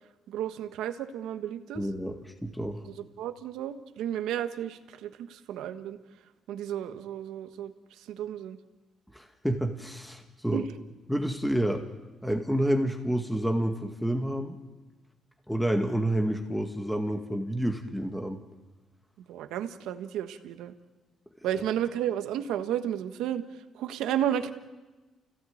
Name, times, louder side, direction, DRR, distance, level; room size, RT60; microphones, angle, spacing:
voice 1, 0.3-1.8 3.0-6.0 6.5-7.7 8.1-8.6 10.5-10.6 19.3-20.7 21.4-23.4 23.7-24.5, right 10 dB, 90° right, 9 dB, 1.3 m, -32 dB
voice 2, 1.8-2.2 2.4-2.8 9.1-10.7 11.1-11.8 12.2-14.6 15.5-18.4, right 1 dB, ahead, 4 dB, 2.0 m, -29 dB
29.5 x 16.5 x 8.8 m, 1.2 s
cardioid pair, 90°, 0 cm